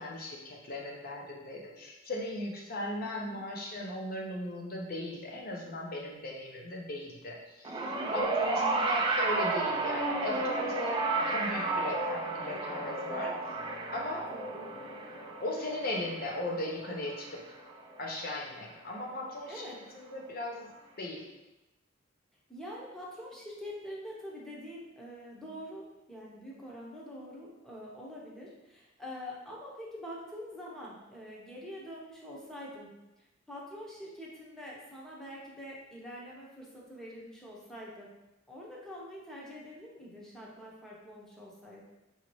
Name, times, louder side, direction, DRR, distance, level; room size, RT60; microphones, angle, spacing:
voice 1, 0.0-7.9 8.1-13.4 13.9-14.3 15.4-17.4 18.0-19.6 19.9-21.3, left 1 dB, 50° left, -1 dB, 0.8 m, -37 dB
voice 2, 3.0-3.4 8.6-8.9 14.3-14.7 19.5-19.8 22.5-32.9 33.5-38.1 38.5-41.8, equal, 5° left, -5 dB, 0.8 m, -45 dB
sound 1, 7.6-18.1 19.1-19.2, right 3 dB, 25° right, 0.4 m, -32 dB
4.9 x 2.8 x 3.1 m, 0.99 s
head